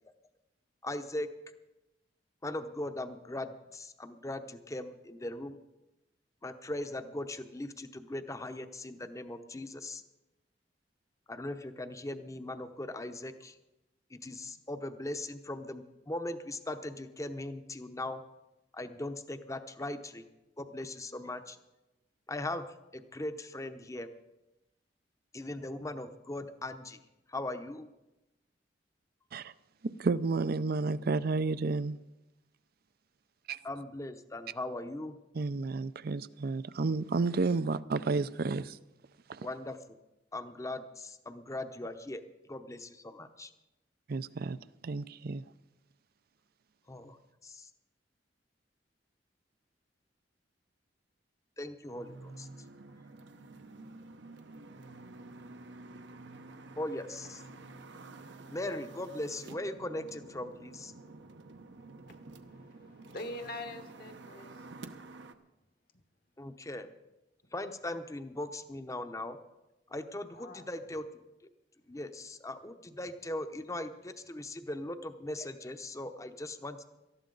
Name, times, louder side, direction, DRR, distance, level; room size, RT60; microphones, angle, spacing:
voice 1, 0.8-1.3 2.4-5.6 6.4-10.0 11.3-13.5 14.1-18.2 18.7-20.2 20.6-21.6 22.3-22.6 22.9-24.1 25.3-27.0 27.3-27.9 33.6-35.2 39.4-40.0 40.3-42.2 42.5-43.5 46.9-47.2 47.4-47.7 51.6-52.5 56.8-57.4 58.5-60.9 66.4-66.9 67.5-69.4 69.9-71.0 71.9-76.9, left 1 dB, 20° left, 0.8 m, -39 dB
voice 2, 29.8-32.0 33.5-33.6 35.3-38.8 39.3-39.5 44.1-44.6 44.8-45.4, right 3 dB, 55° right, 0.5 m, -31 dB
sound 1, 51.9-65.3, right 2 dB, 75° right, 0.9 m, -50 dB
voice 3, 62.4-64.6 70.3-70.7, left 1 dB, 55° left, 1.3 m, -44 dB
18.5 x 13.5 x 3.9 m
head